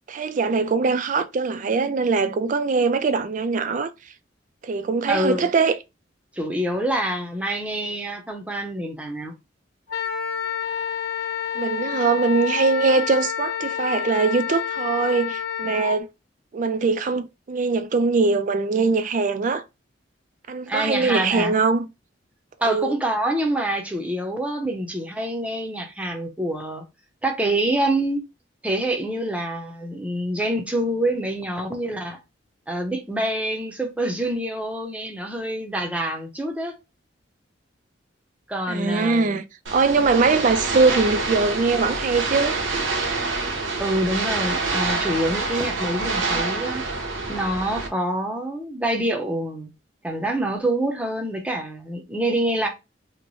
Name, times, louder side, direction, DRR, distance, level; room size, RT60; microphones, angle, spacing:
voice 1, 0.1-3.9 4.6-5.8 11.5-16.1 16.5-19.6 20.5-21.9 22.7-22.9 38.7-39.4 39.7-42.6 46.0-46.4, right 4 dB, 45° right, 0.3 m, -22 dB
voice 2, 5.1-5.5 6.3-9.3 20.7-21.5 22.6-26.9 27.2-28.2 28.6-32.2 32.7-36.8 38.5-39.3 43.8-46.8 47.3-49.7 50.0-52.7, right 1 dB, 5° right, 0.6 m, -26 dB
Wind instrument woodwind instrument, 9.9-16.0, left 9 dB, 55° left, 0.8 m, -28 dB
sound 1, 39.7-47.9, right 3 dB, 80° right, 0.8 m, -26 dB
3.1 x 2.1 x 3.9 m
head